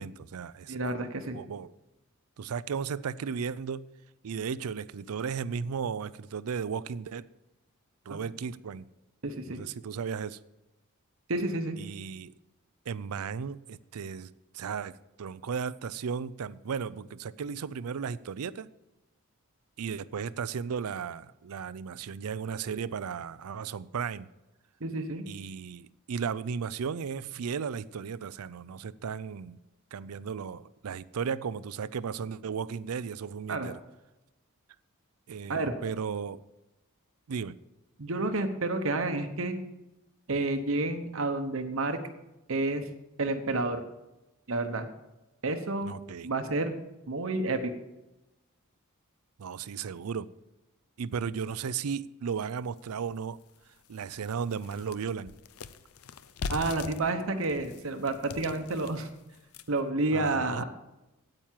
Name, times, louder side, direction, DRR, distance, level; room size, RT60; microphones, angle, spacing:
voice 1, 0.0-0.8 1.3-1.7 2.4-3.9 4.2-7.3 8.1-8.9 9.5-10.4 11.8-12.3 12.9-18.7 19.8-24.3 25.3-29.6 29.9-33.8 35.3-36.4 37.3-37.6 45.8-46.3 49.4-50.3 51.0-53.4 53.9-55.3 60.1-60.6, right 6 dB, 85° right, 0.4 m, -35 dB
voice 2, 0.7-1.4 8.1-8.2 9.2-9.6 11.3-11.8 24.8-25.2 33.5-33.7 35.5-35.7 38.0-39.6 40.3-42.0 42.5-42.9 43.2-43.8 44.5-44.9 45.4-46.0 46.2-46.7 47.1-47.7 56.5-59.1 59.7-60.6, right 2 dB, 65° right, 0.9 m, -30 dB
sound 1, 52.8-52.9 53.4-53.5 53.8-59.9, left 4 dB, 75° left, 0.6 m, -41 dB
9.2 x 8.8 x 7.4 m
head